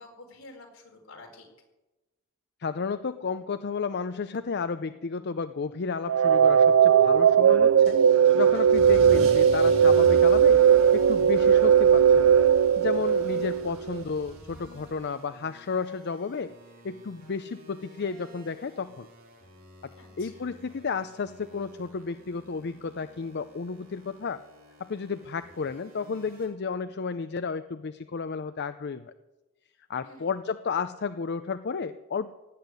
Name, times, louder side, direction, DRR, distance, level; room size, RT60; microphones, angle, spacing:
voice 1, 0.0-1.5 20.0-20.5 30.0-30.4, left 2 dB, 75° left, 1 dB, 4.4 m, -49 dB
voice 2, 2.6-8.0 8.3-10.6 10.9-12.3 12.8-16.5 16.8-19.1 20.2-24.4 24.8-29.1 29.9-32.3, left 5 dB, 55° left, 11 dB, 0.5 m, -32 dB
sound 1, 6.1-14.0, right 8 dB, 70° right, 0.5 m, -19 dB
Car / Engine starting / Accelerating revving vroom, 7.8-15.0, equal, 90° right, 4.2 m, -41 dB
sound 2, 10.5-26.4, right 1 dB, 50° right, 5.1 m, -53 dB
17.0 x 8.1 x 9.5 m, 1.0 s
head